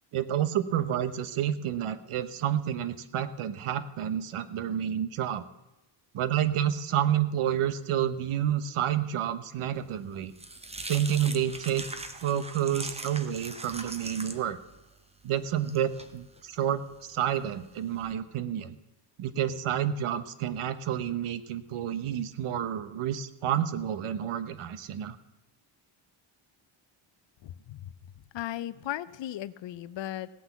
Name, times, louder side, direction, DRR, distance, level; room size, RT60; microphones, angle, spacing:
voice 1, 0.1-5.4 6.1-10.3 10.9-11.8 12.2-14.6 15.2-18.8 19.2-25.2, right 10 dB, 80° right, 13 dB, 1.0 m, -29 dB
sound 1, 9.9-18.1, right 2 dB, 15° right, 0.8 m, -42 dB
voice 2, 27.4-27.9 28.3-30.3, left 13 dB, 60° left, 16 dB, 0.6 m, -36 dB
17.0 x 6.0 x 8.2 m, 1.0 s
wide cardioid pair, 145°, 49 cm